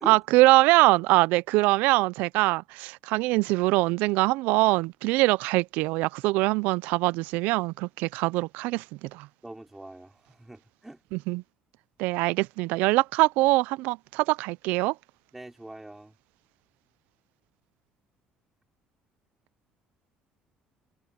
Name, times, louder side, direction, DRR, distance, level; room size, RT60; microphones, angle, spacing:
voice 1, 0.1-9.3 11.1-11.4 12.0-15.0, right 21 dB, 90° right, 0.4 m, -23 dB
voice 2, 9.4-11.0 15.3-16.1, right 1 dB, 10° right, 5.1 m, -43 dB
cardioid pair, 125°, 3 cm